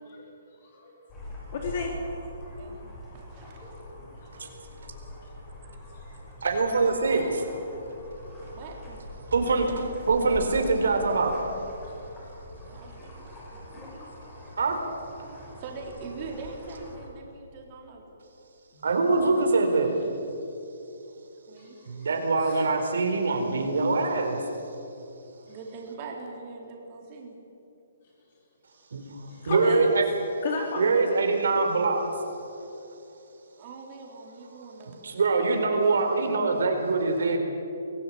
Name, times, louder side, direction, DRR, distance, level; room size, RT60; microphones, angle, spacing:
voice 1, 0.6-1.3 1.5-1.9 3.5-6.0 8.1-8.6 9.2-9.3 12.5-13.1 13.4-13.7 14.2-14.6 15.5-15.6 18.7-18.9 21.6-21.9 22.4-22.6 29.3-30.0 30.4-31.1, left 3 dB, 45° left, 0 dB, 3.1 m, -37 dB
sound 1, 1.1-17.1, left 1 dB, 15° left, 6.1 m, -43 dB
voice 2, 2.5-2.8 3.1-3.8 4.3-4.6 7.1-7.4 8.4-9.0 9.5-10.2 12.7-13.7 15.1-18.1 21.5-21.8 25.4-27.3 33.6-35.1, right 3 dB, 30° right, 0 dB, 4.1 m, -42 dB
voice 3, 6.4-7.2 9.3-9.7 10.1-11.3 14.6-14.8 18.8-19.9 21.9-24.4 28.9-29.0 29.4-30.1 30.8-32.1 35.0-37.4, right 3 dB, 80° right, 4 dB, 4.4 m, -23 dB
24.0 x 17.0 x 8.7 m, 2.9 s
hypercardioid pair, 165°, 0 cm